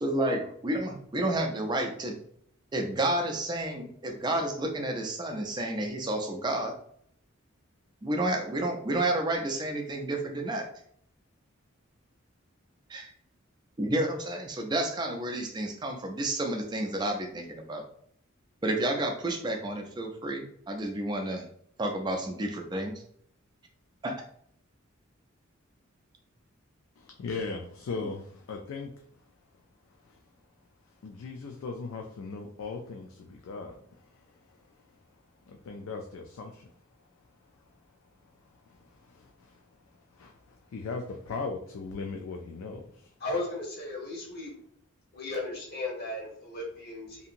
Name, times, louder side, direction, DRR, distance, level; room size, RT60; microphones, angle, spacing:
voice 1, 0.0-2.2 2.7-6.7 8.0-10.7 12.9-13.1 13.8-17.8 18.6-21.4 21.8-23.0 24.0-24.1, right 1 dB, 20° right, 3 dB, 0.4 m, -30 dB
voice 2, 27.0-28.9 30.1-30.2 31.0-34.6 35.5-36.7 38.7-39.6 40.1-43.1, left 4 dB, 80° left, 2 dB, 0.4 m, -39 dB
voice 3, 43.2-44.5 45.1-47.3, left 2 dB, 50° left, -2 dB, 1.0 m, -35 dB
2.7 x 2.7 x 2.5 m, 0.64 s
head